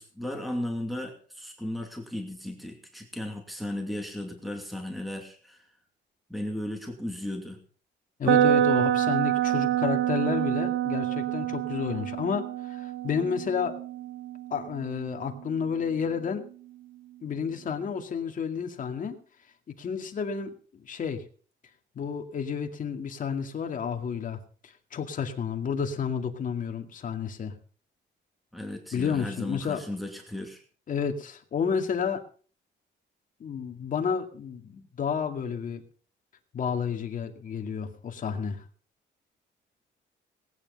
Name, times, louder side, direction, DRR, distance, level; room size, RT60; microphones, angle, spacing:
voice 1, 0.0-5.7 6.3-7.6 28.5-30.6, left 1 dB, ahead, 3 dB, 2.6 m, -35 dB
voice 2, 8.2-13.7 14.5-16.5 17.2-19.2 19.7-21.2 22.0-27.5 28.9-29.8 30.9-32.2 33.4-35.8 36.5-38.6, left 6 dB, 45° left, 4 dB, 2.2 m, -31 dB
sound 1, 8.2-16.2, right 11 dB, 80° right, 1.0 m, -27 dB
18.5 x 9.7 x 5.4 m, 0.42 s
cardioid pair, 140°, 19 cm